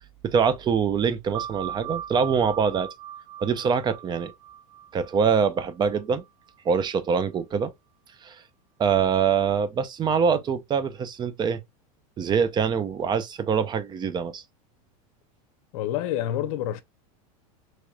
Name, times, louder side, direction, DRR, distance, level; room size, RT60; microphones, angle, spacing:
voice 1, 0.2-2.9 3.4-4.3 4.9-6.2 6.6-7.7 8.2-8.4 8.8-11.6 12.2-14.4, right 6 dB, 25° right, 0.5 m, -24 dB
sound 1, 1.3-6.5, right 11 dB, 80° right, 0.4 m, -39 dB
voice 2, 15.7-16.8, left 12 dB, 65° left, 0.7 m, -27 dB
4.6 x 3.1 x 2.2 m
supercardioid pair, 130°, 19 cm